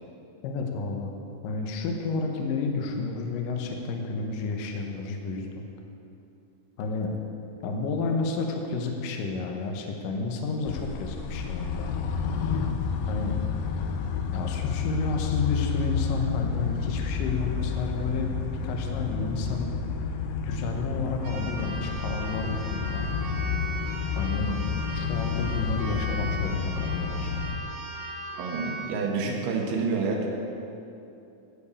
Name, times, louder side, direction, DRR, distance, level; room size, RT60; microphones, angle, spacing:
voice 1, 0.4-1.1 1.4-5.7 6.8-7.1 7.6-11.9 13.1-13.4 14.3-19.8 20.4-23.1 24.2-24.6 24.9-27.4, left 3 dB, 75° left, 2 dB, 2.1 m, -31 dB
sound 1, 10.6-27.6, left 6 dB, 90° left, 2.0 m, -30 dB
Keyboard (musical), 21.2-29.0, right 2 dB, 90° right, 4.4 m, -38 dB
voice 2, 28.4-30.3, right 4 dB, 70° right, 0 dB, 2.9 m, -28 dB
13.5 x 5.2 x 8.2 m, 2.8 s
omnidirectional pair, 5.0 m